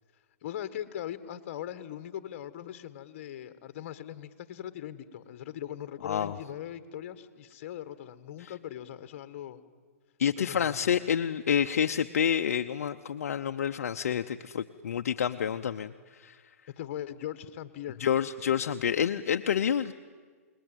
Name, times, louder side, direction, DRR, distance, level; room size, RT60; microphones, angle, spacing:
voice 1, 0.4-9.6 10.4-10.9 16.8-18.0, left 11 dB, 50° left, 12 dB, 1.7 m, -40 dB
voice 2, 6.0-6.3 8.4-8.5 10.2-15.9 16.2-16.4 18.0-19.9, left 8 dB, 75° left, 7 dB, 0.8 m, -28 dB
29.0 x 20.5 x 9.2 m, 1.5 s
hypercardioid pair, 140°, 8 cm